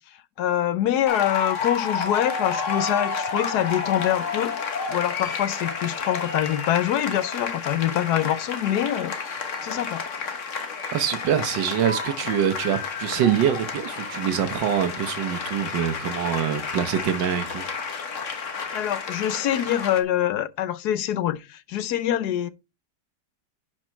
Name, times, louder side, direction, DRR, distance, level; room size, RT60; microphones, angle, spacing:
voice 1, 0.4-4.6 4.9-9.2 9.6-10.0 18.7-22.5, left 11 dB, 70° left, 1.1 m, -25 dB
sound 1, 1.1-20.0, left 5 dB, 45° left, 1.5 m, -31 dB
voice 2, 10.9-17.6, right 9 dB, 85° right, 1.7 m, -25 dB
10.5 x 5.2 x 4.4 m
omnidirectional pair, 1.9 m